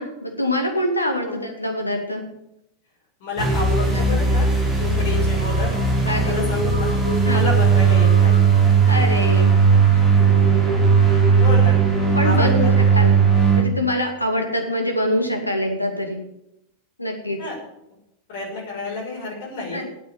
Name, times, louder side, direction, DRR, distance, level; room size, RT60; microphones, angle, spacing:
voice 1, 0.0-2.2 3.9-4.2 6.0-6.6 7.2-7.5 8.8-9.6 12.1-13.2 13.5-16.2 17.0-17.4 19.7-19.8, left 1 dB, 85° left, 3 dB, 2.4 m, -24 dB
voice 2, 3.2-4.5 4.8-5.7 6.0-6.9 7.2-8.3 9.9-10.2 11.4-11.8 12.2-12.7 17.4-17.5 18.3-19.8, left 2 dB, 50° left, -3 dB, 6.2 m, -29 dB
sound 1, 3.4-13.6, right 5 dB, ahead, 4.6 m, -17 dB
9.5 x 8.9 x 9.0 m, 0.84 s
figure-of-eight pair, 90°, 0 cm